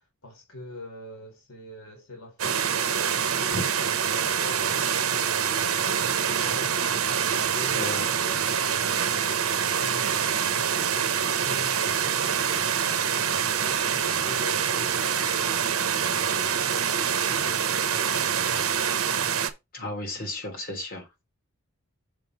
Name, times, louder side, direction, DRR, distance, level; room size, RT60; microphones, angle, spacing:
voice 1, 0.2-3.0 3.4-6.8 7.1-12.4 13.1-16.7 17.1-19.0, left 1 dB, 70° left, 2.2 m, -44 dB
sound 1, 2.4-19.5, right 8 dB, 80° right, 0.9 m, -25 dB
voice 2, 7.7-8.1 19.7-21.2, left 1 dB, 45° left, 3.2 m, -34 dB
6.7 x 3.7 x 5.8 m
head